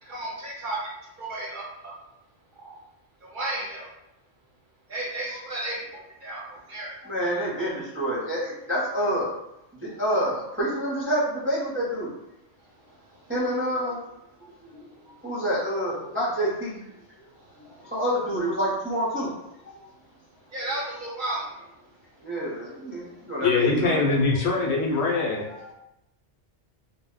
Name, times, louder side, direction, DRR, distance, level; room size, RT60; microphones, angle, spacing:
voice 1, 0.0-0.8 1.2-2.0 2.6-2.7 3.2-3.9 4.9-5.8 6.2-6.9 12.9-13.3 15.2-15.3 17.3-17.9 20.5-21.7, right 1 dB, 55° right, -4 dB, 0.7 m, -34 dB
voice 2, 7.0-9.3 9.7-12.1 13.3-14.0 14.4-14.5 15.0-16.8 17.6-19.3 19.6-19.8 22.2-24.1 25.2-25.7, equal, 15° right, -8 dB, 0.5 m, -28 dB
voice 3, 23.4-25.5, left 4 dB, 70° left, -1 dB, 0.8 m, -23 dB
2.2 x 2.0 x 3.6 m, 0.87 s
omnidirectional pair, 1.2 m